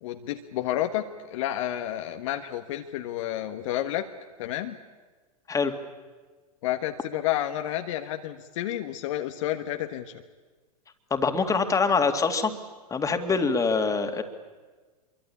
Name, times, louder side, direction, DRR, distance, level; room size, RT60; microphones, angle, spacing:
voice 1, 0.0-4.1 4.4-4.8 6.6-10.1, left 12 dB, 55° left, 6 dB, 1.4 m, -30 dB
voice 2, 11.1-12.5 12.9-14.2, left 4 dB, 15° left, 7 dB, 2.4 m, -24 dB
26.0 x 23.5 x 8.7 m, 1.4 s
figure-of-eight pair, 100°, 20 cm